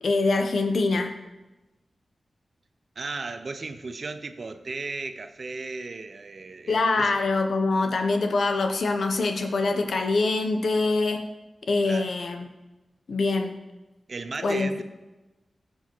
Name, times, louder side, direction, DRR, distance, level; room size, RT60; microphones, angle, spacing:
voice 1, 0.0-1.1 6.7-11.2 11.7-12.5 13.1-13.6 14.4-14.8, left 3 dB, 65° left, 5 dB, 1.1 m, -24 dB
voice 2, 3.0-7.1 11.8-12.1 14.1-14.8, right 3 dB, 45° right, 9 dB, 0.7 m, -35 dB
16.5 x 7.7 x 4.7 m, 1.1 s
wide cardioid pair, 155°, 0 cm